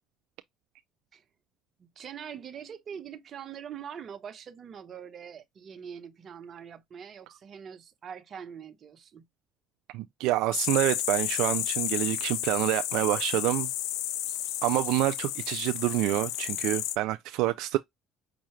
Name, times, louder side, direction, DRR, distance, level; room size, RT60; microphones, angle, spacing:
voice 1, 1.8-9.2, right 8 dB, 45° right, 1.0 m, -43 dB
voice 2, 9.9-13.7 14.6-17.8, right 16 dB, 80° right, 0.3 m, -27 dB
sound 1, 10.5-17.0, left 13 dB, 85° left, 0.5 m, -32 dB
5.7 x 2.4 x 3.0 m
cardioid pair, 105°, 0 cm